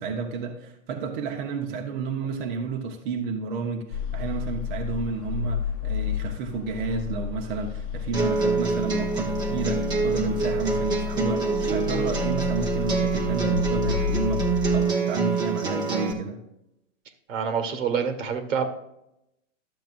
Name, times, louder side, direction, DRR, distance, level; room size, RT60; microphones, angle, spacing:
voice 1, 0.0-16.4, right 4 dB, 40° right, 2 dB, 1.0 m, -31 dB
sound 1, 3.9-14.8, left 8 dB, 45° left, 0.9 m, -31 dB
sound 2, 8.1-16.1, right 4 dB, 10° right, 0.9 m, -26 dB
voice 2, 17.3-18.7, right 6 dB, 70° right, 7 dB, 1.8 m, -26 dB
12.0 x 7.5 x 2.6 m, 0.84 s
hypercardioid pair, 155°, 39 cm